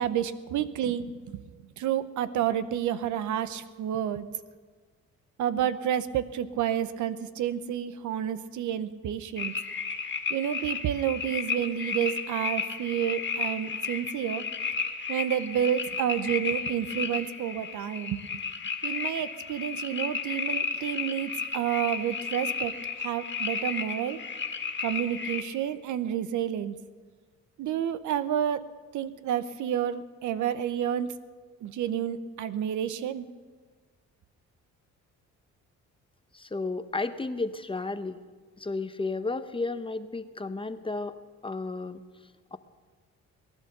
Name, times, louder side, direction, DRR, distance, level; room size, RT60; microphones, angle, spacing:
voice 1, 0.0-1.4 1.8-4.3 5.4-9.5 10.3-14.4 15.1-18.2 18.8-24.2 24.8-26.8 27.6-28.6 28.9-31.1 31.6-33.3, right 10 dB, 75° right, 14 dB, 0.8 m, -30 dB
sound 1, 9.4-25.4, left 5 dB, 40° left, 2.0 m, -33 dB
voice 2, 36.3-38.2 38.6-41.2 41.4-42.0 42.5-42.6, left 3 dB, 15° left, 10 dB, 0.8 m, -33 dB
19.5 x 11.0 x 6.7 m, 1.5 s
cardioid pair, 90°, 30 cm